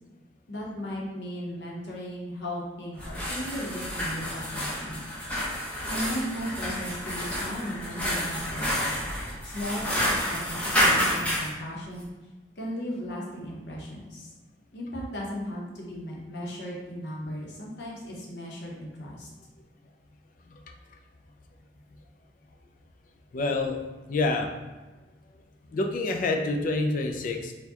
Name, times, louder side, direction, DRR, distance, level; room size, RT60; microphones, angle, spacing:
voice 1, 0.5-5.0 5.9-9.1 9.4-12.1 12.6-14.3 14.7-19.3, equal, 70° left, -3 dB, 0.9 m, -36 dB
sound 1, 2.9-11.5, equal, 10° left, 0.7 m, -29 dB
voice 2, 23.3-23.8 24.1-24.5 25.7-27.5, left 2 dB, 50° left, 4 dB, 0.4 m, -27 dB
4.4 x 2.2 x 2.8 m, 1.2 s
head